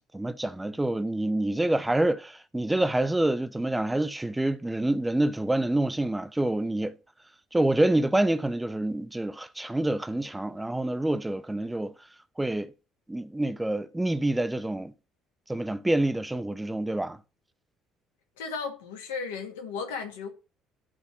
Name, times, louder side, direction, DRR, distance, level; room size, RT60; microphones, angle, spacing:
voice 1, 0.1-7.0 7.5-11.9 12.4-12.7 13.1-14.9 15.5-17.2, right 1 dB, 10° right, 0.9 m, -27 dB
voice 2, 18.4-20.3, left 5 dB, 70° left, 1.9 m, -35 dB
11.5 x 4.4 x 5.8 m
figure-of-eight pair, 50°, 0 cm